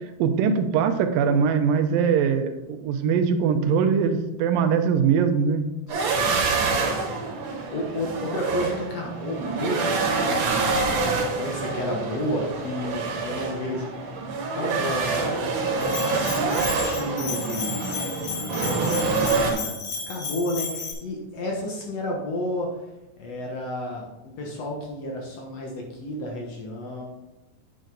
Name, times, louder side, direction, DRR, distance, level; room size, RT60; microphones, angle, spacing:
voice 1, 0.2-5.6, right 6 dB, 90° right, 8 dB, 2.5 m, -22 dB
voice 2, 5.9-6.6 6.9-13.9 14.6-19.7 20.1-22.7 23.2-27.1, left 1 dB, 60° left, -1 dB, 1.9 m, -32 dB
sound 1, 5.9-19.5, right 4 dB, 70° right, 2.9 m, -26 dB
Bell, 15.8-20.9, left 5 dB, 80° left, 3.3 m, -33 dB
9.0 x 6.7 x 3.9 m, 1.0 s
omnidirectional pair, 3.9 m